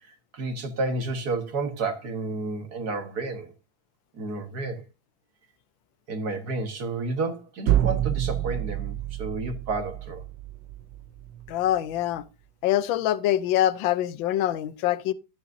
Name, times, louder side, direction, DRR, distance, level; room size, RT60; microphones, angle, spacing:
voice 1, 0.1-3.5 4.1-4.8 6.1-10.2, right 3 dB, 50° right, 1.8 m, -31 dB
sound 1, 7.7-11.5, right 12 dB, 70° right, 1.2 m, -28 dB
voice 2, 11.5-12.2 12.6-15.1, left 12 dB, 75° left, 1.4 m, -24 dB
13.0 x 9.4 x 2.6 m
omnidirectional pair, 2.2 m